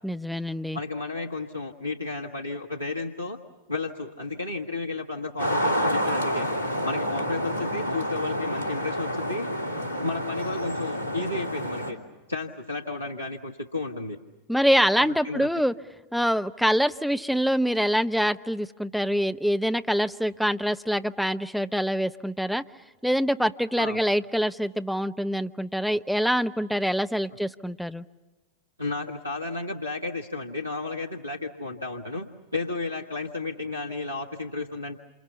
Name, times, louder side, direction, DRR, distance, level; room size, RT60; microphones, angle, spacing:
voice 1, 0.0-0.8 14.5-15.8 16.1-22.6 23.0-28.0, equal, ahead, 11 dB, 0.8 m, -25 dB
voice 2, 0.7-3.4 3.7-6.5 6.8-9.5 10.0-12.0 12.3-14.2 15.0-15.5 23.8-24.0 28.8-35.0, left 3 dB, 90° right, 5 dB, 1.4 m, -33 dB
sound 1, 5.4-11.9, equal, 75° left, 3.0 m, -28 dB
28.0 x 28.0 x 7.0 m, 1.2 s
figure-of-eight pair, 90°, 0 cm